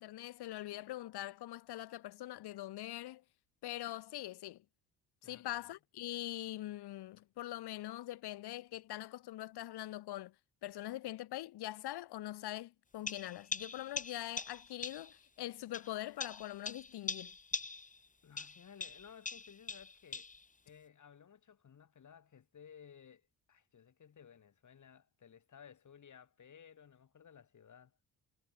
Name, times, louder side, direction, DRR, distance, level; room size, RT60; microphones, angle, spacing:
voice 1, 0.0-3.2 3.6-4.6 5.2-10.3 10.6-17.4, left 15 dB, 75° left, 1.7 m, -43 dB
voice 2, 5.2-5.7 18.2-20.3 20.7-28.0, left 7 dB, 50° left, 6.0 m, -58 dB
sound 1, 13.1-15.2 15.7-18.1 18.4-20.4, left 4 dB, 20° left, 1.2 m, -43 dB
cardioid pair, 95°, 39 cm